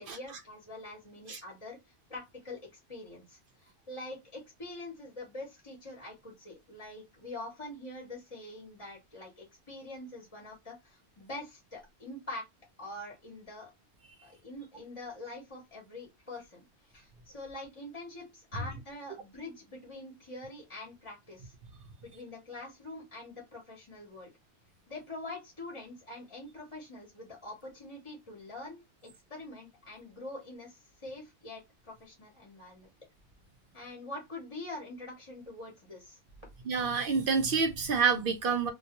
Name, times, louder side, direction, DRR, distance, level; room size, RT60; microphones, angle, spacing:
voice 1, 0.0-1.8 2.1-12.4 12.8-13.7 14.2-16.7 16.9-21.5 22.0-24.3 24.9-32.9 33.7-36.2, left 2 dB, 30° left, 0.8 m, -45 dB
voice 2, 36.7-38.7, right 5 dB, 60° right, 0.7 m, -28 dB
2.2 x 2.2 x 2.8 m
omnidirectional pair, 1.2 m